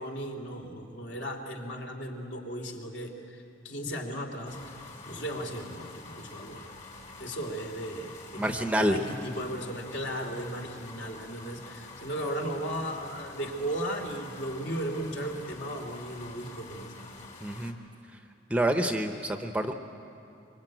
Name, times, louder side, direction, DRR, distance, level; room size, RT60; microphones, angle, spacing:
voice 1, 0.0-4.8 5.1-6.7 7.2-17.0, right 1 dB, 60° left, 3 dB, 3.0 m, -36 dB
sound 1, 4.5-17.7, left 3 dB, 35° left, 2.4 m, -47 dB
voice 2, 8.4-9.0 17.4-17.7 18.5-19.7, right 1 dB, 5° right, 5 dB, 0.8 m, -27 dB
25.0 x 24.0 x 9.1 m, 2.7 s
head